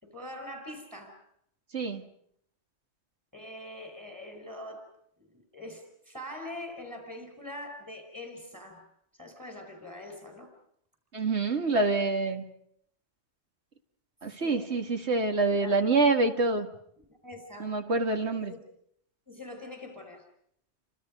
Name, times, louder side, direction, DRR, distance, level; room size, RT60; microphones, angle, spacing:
voice 1, 0.0-1.2 3.3-4.9 5.2-8.9 9.1-10.5 14.4-14.7 15.5-15.8 17.0-17.7 18.2-18.5 19.3-20.2, left 1 dB, 15° right, 4 dB, 5.0 m, -43 dB
voice 2, 11.1-12.4 14.2-16.7 17.6-18.5, right 3 dB, 65° right, 5 dB, 2.2 m, -26 dB
29.5 x 25.0 x 5.3 m, 0.70 s
omnidirectional pair, 1.2 m